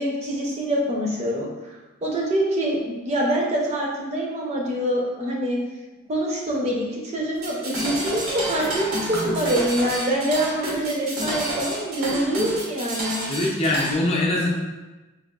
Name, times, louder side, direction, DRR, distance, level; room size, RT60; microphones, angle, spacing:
voice 1, 0.0-1.7 2.0-5.6 6.1-13.2, right 1 dB, 30° right, -2 dB, 0.6 m, -25 dB
sound 1, 7.4-13.9, right 1 dB, 85° right, 1.1 m, -29 dB
voice 2, 13.3-14.5, left 1 dB, 30° left, -3 dB, 0.5 m, -22 dB
4.8 x 2.4 x 2.3 m, 1.1 s
head